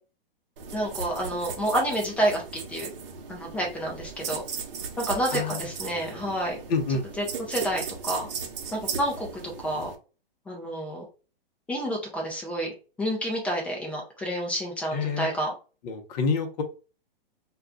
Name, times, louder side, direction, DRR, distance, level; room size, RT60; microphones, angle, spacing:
sound 1, 0.6-9.9, right 6 dB, 65° right, 0.8 m, -37 dB
voice 1, 0.7-2.4 2.7-2.9 3.3-4.4 5.0-6.6 7.2-8.3 8.7-9.3 9.6-9.9 10.5-11.0 11.7-12.7 13.0-15.5, right 1 dB, 5° left, 0 dB, 0.3 m, -29 dB
voice 2, 5.3-5.7 6.1-6.2 6.7-7.0 14.9-15.3 15.8-16.6, left 4 dB, 45° left, 6 dB, 0.7 m, -28 dB
2.3 x 2.3 x 3.7 m, 0.34 s
hypercardioid pair, 135°, 30 cm